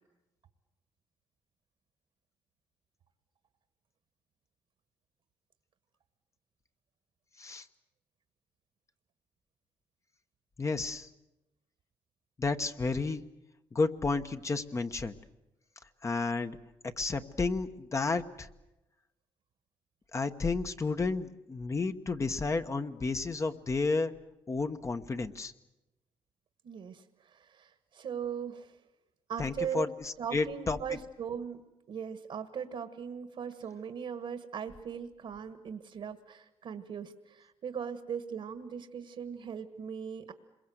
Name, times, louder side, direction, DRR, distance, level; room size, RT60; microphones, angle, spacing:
voice 1, 10.6-11.1 12.4-13.2 13.7-15.2 16.0-16.6 16.8-18.5 20.1-24.1 24.5-25.5 29.4-31.0, left 3 dB, 30° left, 7 dB, 1.1 m, -32 dB
voice 2, 26.6-28.8 29.3-29.9 30.2-31.6 31.9-40.3, right 7 dB, 65° right, 9 dB, 1.6 m, -39 dB
26.5 x 22.5 x 7.9 m, 0.94 s
cardioid pair, 105°, 10 cm